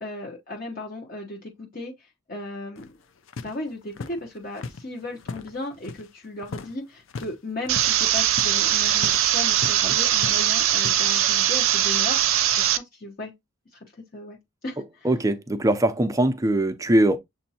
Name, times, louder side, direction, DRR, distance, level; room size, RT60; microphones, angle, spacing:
voice 1, 0.0-1.9 2.3-3.0 3.4-13.3 14.1-14.4 14.6-14.8, left 2 dB, 45° left, 0.9 m, -36 dB
sound 1, 2.8-6.1 6.4-6.8 7.0-7.3 7.6-9.8 10.1-11.0, left 4 dB, 75° left, 0.5 m, -38 dB
sound 2, 7.7-12.8, right 11 dB, 85° right, 0.5 m, -21 dB
voice 2, 15.0-17.2, right 1 dB, 15° right, 0.5 m, -21 dB
6.9 x 2.6 x 2.8 m
head